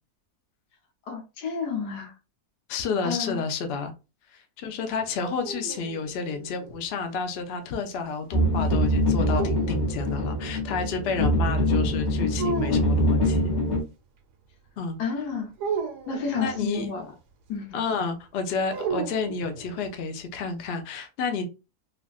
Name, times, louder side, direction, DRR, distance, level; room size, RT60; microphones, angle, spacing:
voice 1, 1.1-2.1 3.0-3.4 15.0-15.5 16.1-17.1 17.5-17.8, left 5 dB, 85° left, 1.4 m, -30 dB
voice 2, 2.7-3.9 4.3-13.5 14.8-15.0 16.4-16.9 17.7-21.5, left 5 dB, 60° left, 0.6 m, -30 dB
sound 1, 5.0-6.8 9.3-10.6 12.4-13.2 15.6-16.7 18.7-19.9, right 5 dB, 90° right, 1.2 m, -34 dB
sound 2, 8.3-13.8, equal, 45° left, 1.6 m, -24 dB
3.4 x 2.5 x 2.3 m
omnidirectional pair, 1.7 m